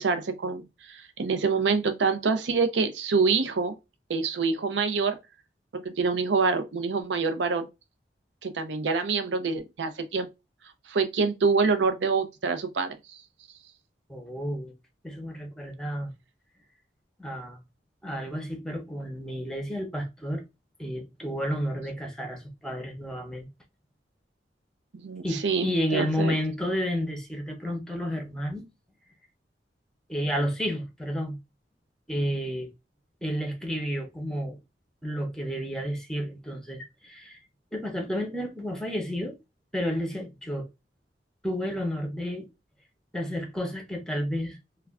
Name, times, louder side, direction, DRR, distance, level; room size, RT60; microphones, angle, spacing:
voice 1, 0.0-3.7 4.1-5.2 5.7-7.7 8.4-10.3 10.9-13.0 24.9-26.3, right 4 dB, 90° right, 0.5 m, -26 dB
voice 2, 14.1-14.7 15.0-16.1 17.2-17.6 18.0-20.4 20.8-23.5 25.2-28.6 30.1-31.4 32.1-32.7 33.2-34.6 35.0-37.4 37.7-39.4 39.7-40.7 41.4-42.5 43.1-44.6, equal, 5° left, 0.6 m, -31 dB
2.3 x 2.2 x 3.4 m
head